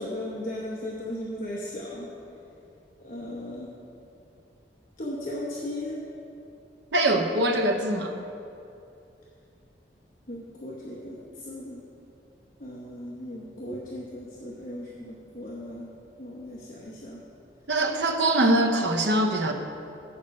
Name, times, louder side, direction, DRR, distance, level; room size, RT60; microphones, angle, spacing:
voice 1, 0.0-2.1 3.0-3.8 5.0-6.1 10.3-11.8 12.6-15.9 16.2-17.2, left 1 dB, 50° left, -5 dB, 0.9 m, -36 dB
voice 2, 6.9-8.1 17.7-19.5, right 1 dB, 80° right, 5 dB, 0.7 m, -23 dB
7.9 x 7.2 x 5.3 m, 2.7 s
head